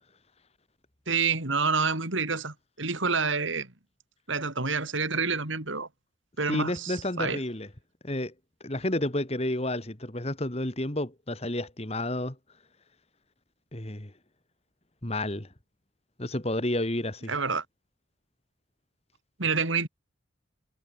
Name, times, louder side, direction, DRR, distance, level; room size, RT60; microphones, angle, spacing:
voice 1, 1.1-3.7 4.3-5.9 6.4-7.4 17.3-17.6 19.4-19.9, right 4 dB, 75° right, 3.6 m, -28 dB
voice 2, 6.5-7.7 8.0-8.3 8.6-12.4 13.7-14.1 15.0-15.5 16.2-17.3, left 1 dB, 30° left, 2.0 m, -30 dB
head